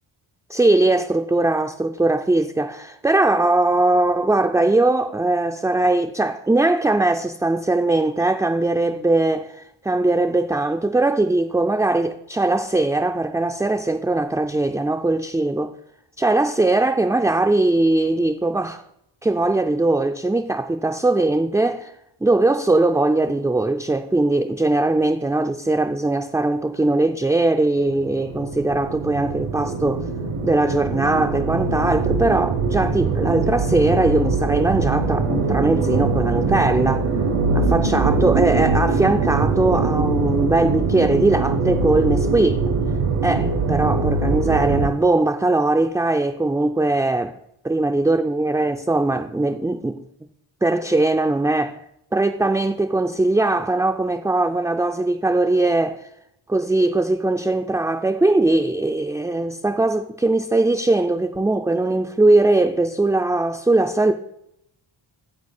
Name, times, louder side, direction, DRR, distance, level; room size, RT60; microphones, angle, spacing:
voice 1, 0.5-15.7 16.2-18.8 19.2-21.9 22.2-30.1 30.4-37.1 37.5-42.7 43.2-47.4 47.6-50.0 50.6-51.8 52.1-56.0 56.5-64.1, right 2 dB, 5° right, 0.3 m, -20 dB
sound 1, 27.8-44.9, right 4 dB, 85° right, 1.4 m, -22 dB
9.7 x 7.5 x 4.2 m
cardioid pair, 115°, 49 cm